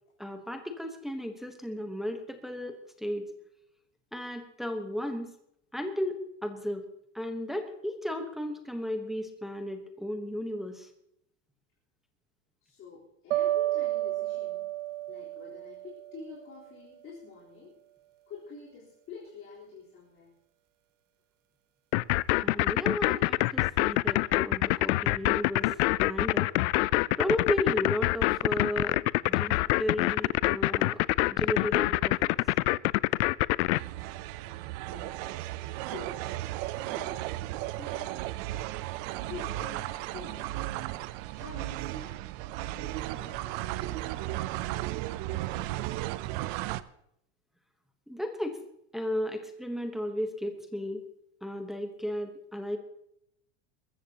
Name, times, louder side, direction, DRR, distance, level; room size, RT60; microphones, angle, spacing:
voice 1, 0.2-3.3 4.1-5.3 5.7-6.9 7.1-10.9 22.4-26.5 27.2-31.0 31.3-32.2 48.1-48.6 48.9-51.1 51.4-52.8, equal, ahead, 5 dB, 1.0 m, -34 dB
voice 2, 12.6-14.7 15.1-17.7 18.3-20.3 34.9-35.2 35.9-36.2 36.7-37.3 37.6-38.2 39.3-42.2 42.7-46.2, left 5 dB, 35° left, -6 dB, 3.9 m, -48 dB
sound 1, 13.3-16.4, right 15 dB, 85° right, 1.1 m, -31 dB
sound 2, 21.9-33.8, left 20 dB, 65° left, 0.5 m, -25 dB
sound 3, 33.7-46.8, right 16 dB, 45° right, 0.6 m, -35 dB
22.0 x 14.5 x 2.9 m, 0.76 s
supercardioid pair, 160°, 36 cm